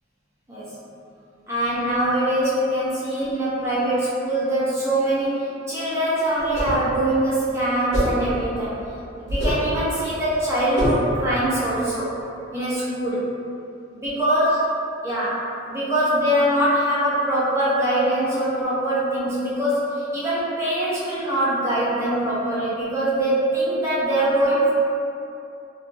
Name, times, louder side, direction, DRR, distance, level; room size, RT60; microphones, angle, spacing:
voice 1, 1.5-8.8 9.2-12.1 12.5-13.3 13.9-14.6 15.0-15.4 15.7-24.7, right 1 dB, 15° right, -10 dB, 0.5 m, -23 dB
sound 1, 6.4-6.9 7.9-8.3 9.3-9.7 10.8-11.1, equal, 55° left, 1.0 m, -24 dB
2.7 x 2.3 x 2.6 m, 2.6 s
head